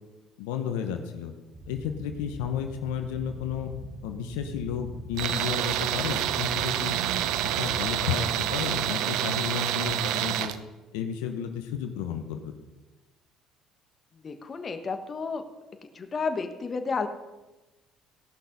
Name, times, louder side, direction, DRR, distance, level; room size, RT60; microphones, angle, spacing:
voice 1, 0.4-1.3 1.7-3.7 4.0-7.0 7.6-10.5 10.9-12.5, left 8 dB, 85° left, 6 dB, 1.0 m, -32 dB
sound 1, 1.5-8.8, equal, 40° right, 3.0 m, -43 dB
Tools, 5.2-10.6, right 12 dB, 75° right, 0.6 m, -28 dB
voice 2, 14.2-15.4 15.9-17.1, left 4 dB, 35° left, 7 dB, 1.3 m, -31 dB
17.0 x 6.1 x 5.4 m, 1.1 s
supercardioid pair, 75°, 0 cm